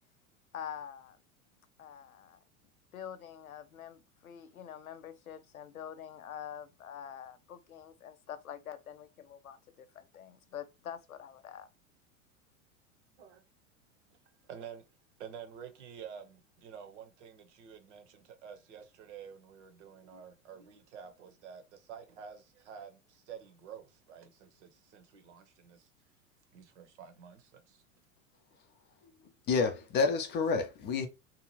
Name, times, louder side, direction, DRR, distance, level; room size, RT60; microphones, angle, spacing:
voice 1, 0.5-1.2 1.8-2.4 2.9-11.7, left 9 dB, 80° left, 0.6 m, -46 dB
voice 2, 14.4-25.9 26.5-27.8, right 7 dB, 55° right, 0.9 m, -49 dB
voice 3, 29.5-31.1, left 4 dB, 25° left, 0.6 m, -29 dB
2.7 x 2.4 x 3.1 m
figure-of-eight pair, 85°, 42 cm